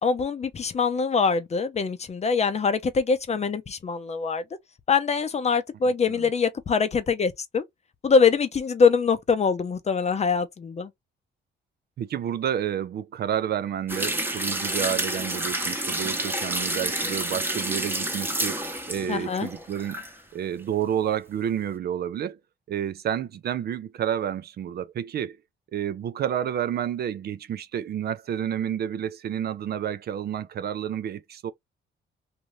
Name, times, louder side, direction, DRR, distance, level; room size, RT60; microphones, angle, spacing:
voice 1, 0.0-4.4 4.9-7.6 8.0-10.9 19.1-19.5, left 5 dB, 35° left, 0.6 m, -23 dB
voice 2, 12.0-18.6 18.9-20.0 20.3-22.4 22.7-25.4 25.7-31.5, right 9 dB, 55° right, 0.4 m, -30 dB
sound 1, 13.9-20.1 20.5-20.6, right 1 dB, 10° right, 0.9 m, -29 dB
2.7 x 2.5 x 3.0 m
cardioid pair, 90°, 20 cm